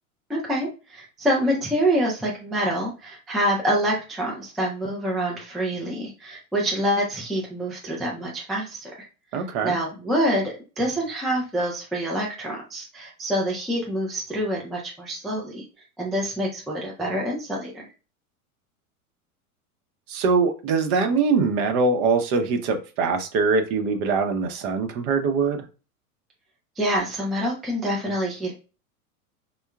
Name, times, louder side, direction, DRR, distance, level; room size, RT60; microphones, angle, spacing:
voice 1, 0.3-8.9 9.3-15.6 16.0-17.9 26.8-28.5, equal, ahead, 0.3 m, -26 dB
voice 2, 9.3-9.8 20.1-25.6, right 4 dB, 45° right, 0.7 m, -23 dB
3.5 x 2.2 x 2.3 m
hypercardioid pair, 90°, 44 cm